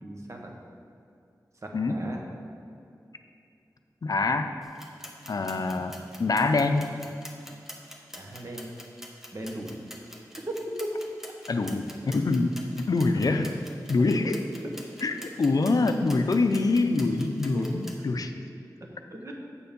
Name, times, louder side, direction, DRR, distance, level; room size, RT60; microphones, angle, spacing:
voice 1, 0.0-0.6 1.6-2.2 8.1-8.7 9.3-9.7 10.4-10.9 14.0-14.4 14.8-14.9 17.5-17.7 19.1-19.3, right 1 dB, 45° right, 0 dB, 1.3 m, -37 dB
voice 2, 4.0-4.5 5.3-5.9 6.2-6.9 11.5-13.6 13.9-14.4 15.0-18.3, left 3 dB, 60° left, 6 dB, 0.5 m, -25 dB
sound 1, 4.6-18.0, equal, 5° right, 1.1 m, -46 dB
7.1 x 7.0 x 5.2 m, 2.5 s
wide cardioid pair, 80°, 7 cm